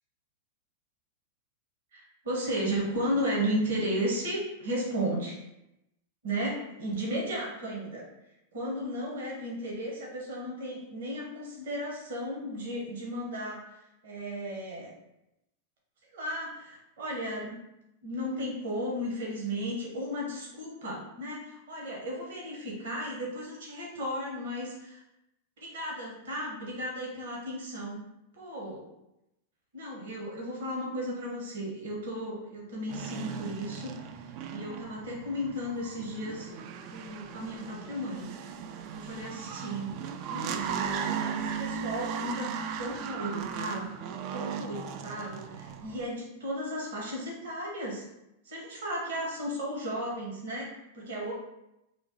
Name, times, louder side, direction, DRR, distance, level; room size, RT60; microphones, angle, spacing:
voice 1, 1.9-5.4 6.2-8.0 8.5-14.9 16.1-17.6 18.0-25.0 25.6-28.0 28.3-28.8 29.7-34.0 34.5-36.5 36.9-38.3 38.9-40.0 40.3-44.0 44.3-48.1 48.4-51.3, equal, 70° right, -2 dB, 1.0 m, -34 dB
sound 1, 32.9-46.1, right 7 dB, 50° right, 0.3 m, -37 dB
3.1 x 2.3 x 3.8 m, 0.88 s
hypercardioid pair, 100°, 0 cm